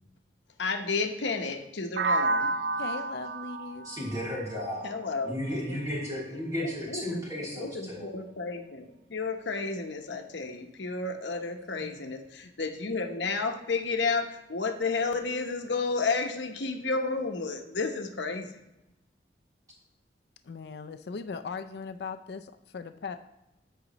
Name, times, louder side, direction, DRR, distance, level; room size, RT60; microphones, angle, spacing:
voice 1, 0.6-2.6 4.8-5.4 6.6-18.5, left 4 dB, 85° left, 5 dB, 0.9 m, -32 dB
sound 1, 2.0-5.8, right 3 dB, 60° right, 0.4 m, -31 dB
voice 2, 2.8-3.9 20.4-22.4 22.7-23.2, left 5 dB, 65° left, 8 dB, 0.4 m, -38 dB
voice 3, 3.8-4.9 5.2-8.2, left 1 dB, 20° right, -6 dB, 3.1 m, -34 dB
14.5 x 5.0 x 3.0 m, 0.93 s
head